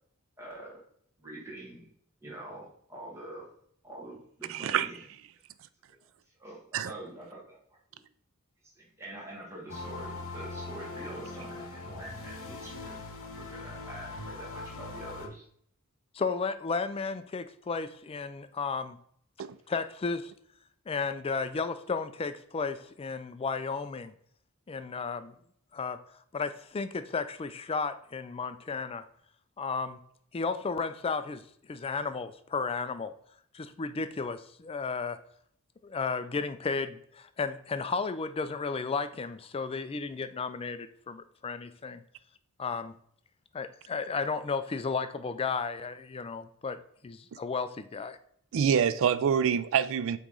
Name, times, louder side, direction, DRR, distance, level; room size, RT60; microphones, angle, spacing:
voice 1, 0.4-0.8 1.2-1.9 2.2-3.5 3.8-5.0 6.4-7.6 7.9-8.0 8.6-13.0 13.3-15.5, right 1 dB, 10° right, 1.4 m, -45 dB
voice 2, 4.5-4.9 6.7-6.9 19.4-19.6 48.5-50.2, right 7 dB, 60° right, 0.4 m, -26 dB
sound 1, 9.7-15.3, left 2 dB, 60° left, 1.0 m, -41 dB
voice 3, 16.1-19.0 19.7-20.3 20.9-24.1 24.7-25.4 25.7-26.0 26.3-29.1 29.6-30.0 30.3-31.4 31.7-33.1 33.5-35.2 35.8-42.0 42.6-42.9 43.5-46.8 47.0-48.2, left 4 dB, 25° left, 0.3 m, -33 dB
8.1 x 3.1 x 3.8 m
head